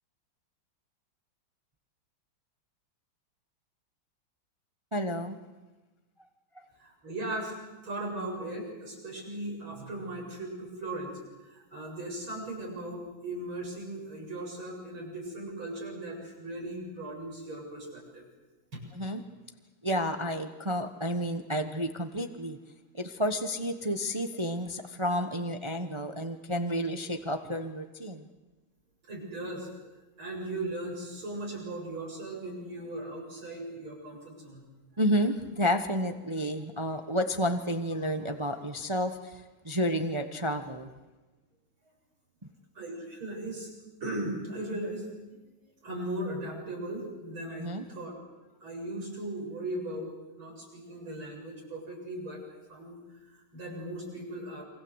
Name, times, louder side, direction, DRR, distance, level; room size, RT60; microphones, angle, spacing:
voice 1, 4.9-5.4 6.6-6.7 18.9-19.2 19.8-22.6 22.9-28.3 35.0-40.9 47.6-47.9, equal, 20° right, 7 dB, 1.0 m, -31 dB
voice 2, 6.8-7.5 7.8-11.1 11.4-18.2 18.7-18.8 29.1-29.7 30.2-34.6 42.7-43.7 44.0-45.4 45.8-48.1 48.6-50.1 50.4-53.0 53.3-54.6, right 1 dB, 80° right, -1 dB, 8.6 m, -38 dB
28.5 x 24.5 x 8.1 m, 1.1 s
omnidirectional pair, 2.2 m